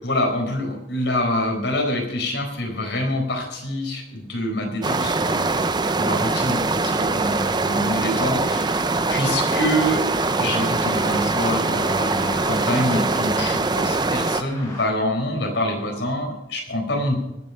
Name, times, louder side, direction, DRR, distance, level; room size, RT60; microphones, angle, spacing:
voice 1, 0.0-8.8 9.1-10.0 10.4-17.2, left 1 dB, 85° left, 2 dB, 4.4 m, -26 dB
sound 1, 4.8-14.4, right 3 dB, 25° right, 0.6 m, -23 dB
sound 2, 6.1-14.8, left 1 dB, 20° left, 5.0 m, -40 dB
20.0 x 7.9 x 5.6 m, 0.89 s
head